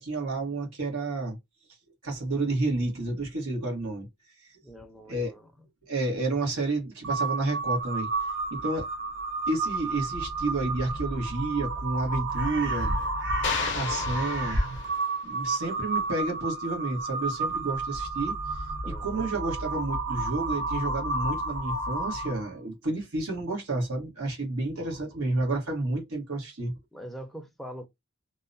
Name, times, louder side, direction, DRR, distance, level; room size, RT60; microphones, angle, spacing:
voice 1, 0.0-1.4 2.0-4.1 4.4-4.5 5.1-5.3 5.9-8.1 8.5-8.9 9.5-12.9 13.7-14.8 15.2-18.4 18.8-26.7, right 2 dB, 90° right, 1.2 m, -30 dB
voice 2, 4.6-5.5 18.8-19.3 26.9-27.9, equal, ahead, 0.4 m, -43 dB
Crow, 7.0-22.5, right 2 dB, 60° right, 0.7 m, -31 dB
sound 1, 13.4-15.2, left 7 dB, 55° left, 0.5 m, -34 dB
2.8 x 2.1 x 2.5 m
head